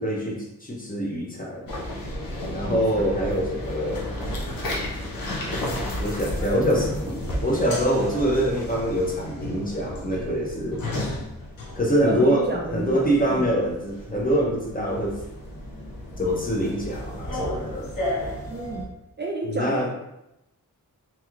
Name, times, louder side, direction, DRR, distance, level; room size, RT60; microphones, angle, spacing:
voice 1, 0.0-1.7 2.5-4.0 6.0-10.8 11.7-15.2 16.2-17.9 19.5-19.9, equal, 25° left, -2 dB, 0.8 m, -24 dB
sound 1, 1.7-18.9, left 1 dB, 80° left, 0.8 m, -33 dB
voice 2, 2.7-3.1 12.0-13.5 18.5-18.9 19.2-19.9, right 2 dB, 30° right, -1 dB, 0.4 m, -31 dB
3.0 x 2.8 x 2.5 m, 0.88 s
cardioid pair, 65°, 34 cm